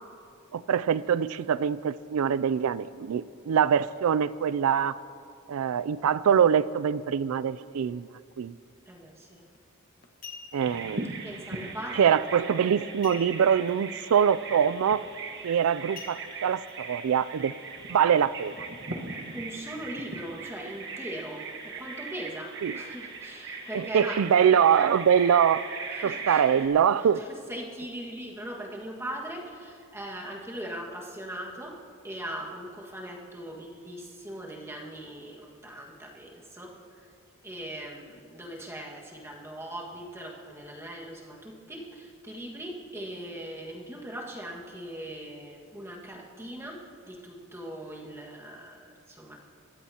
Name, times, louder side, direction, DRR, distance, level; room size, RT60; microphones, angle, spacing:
voice 1, 0.5-5.0 5.5-8.1 8.4-8.5 10.5-11.1 12.0-15.0 15.4-17.5 17.9-18.6 22.6-22.7 23.7-25.7 26.0-27.2, right 8 dB, 70° right, 17 dB, 0.4 m, -24 dB
voice 2, 8.8-9.5 11.2-12.1 19.3-24.2 25.9-26.4 27.0-31.8 32.0-37.1 37.4-49.4, right 1 dB, 10° right, -2 dB, 1.7 m, -40 dB
sound 1, 9.4-9.6 10.0-10.8 13.0-13.7 14.0-14.1 14.6-14.9 16.0-16.7 17.3-17.4, left 5 dB, 40° left, 1.3 m, -45 dB
Bird vocalization bird call bird song, 10.6-26.7, right 4 dB, 50° right, 1.4 m, -39 dB
23.5 x 15.5 x 2.9 m, 2.4 s
head